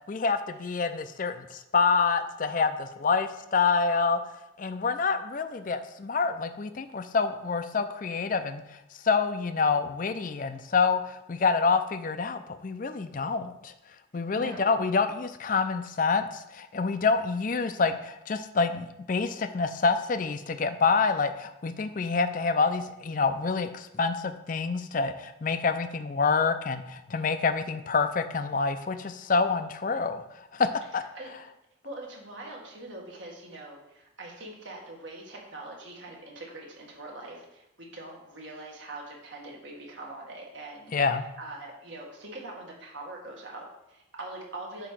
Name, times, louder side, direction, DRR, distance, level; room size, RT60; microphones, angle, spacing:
voice 1, 0.1-4.2 4.6-8.6 9.0-13.7 14.1-31.0 40.9-41.2, left 4 dB, 40° left, 9 dB, 0.4 m, -27 dB
voice 2, 14.3-14.9 31.1-31.3 31.8-44.9, right 2 dB, 70° right, -2 dB, 1.8 m, -43 dB
8.6 x 3.0 x 5.9 m, 0.87 s
head